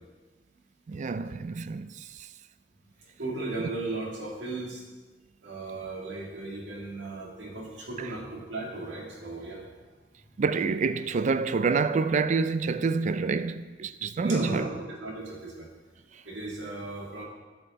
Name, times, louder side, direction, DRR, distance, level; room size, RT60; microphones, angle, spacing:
voice 1, 0.9-1.9 8.0-8.1 10.4-14.7, right 4 dB, 40° right, 0.3 m, -27 dB
voice 2, 3.2-4.8 5.4-9.7 14.2-15.7 16.1-17.2, right 2 dB, 85° right, 2.2 m, -36 dB
11.0 x 5.8 x 4.1 m
head